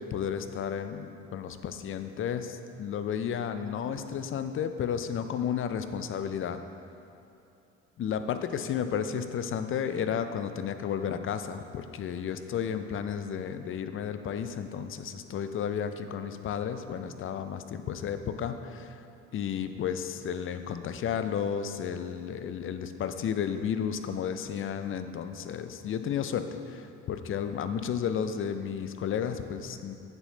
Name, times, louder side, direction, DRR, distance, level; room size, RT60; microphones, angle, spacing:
voice 1, 0.0-6.6 8.0-19.0 19.3-29.9, left 8 dB, 35° left, 9 dB, 0.6 m, -32 dB
8.3 x 7.0 x 3.9 m, 2.6 s
hypercardioid pair, 60°, 39 cm